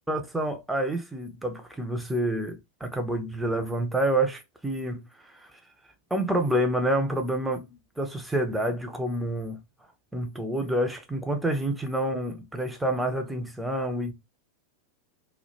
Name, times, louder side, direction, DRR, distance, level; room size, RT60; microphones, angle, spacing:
voice 1, 0.1-5.6 6.1-9.6 10.1-14.1, right 1 dB, 5° right, 0.4 m, -28 dB
2.1 x 2.1 x 2.8 m
figure-of-eight pair, 90°, 0 cm